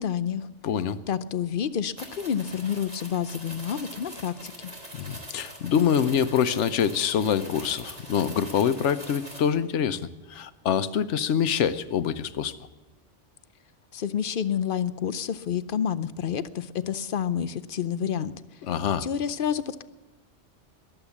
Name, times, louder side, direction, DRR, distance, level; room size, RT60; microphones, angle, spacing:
voice 1, 0.0-0.5 1.1-4.7 13.9-18.3 19.0-19.8, left 8 dB, 55° left, 13 dB, 0.7 m, -29 dB
voice 2, 0.6-1.0 4.9-10.0 10.3-12.6 18.7-19.1, left 8 dB, 75° left, 13 dB, 1.1 m, -25 dB
sound 1, 2.0-9.5, equal, 35° right, 3.1 m, -43 dB
21.5 x 8.0 x 7.1 m, 1.1 s
omnidirectional pair, 1.2 m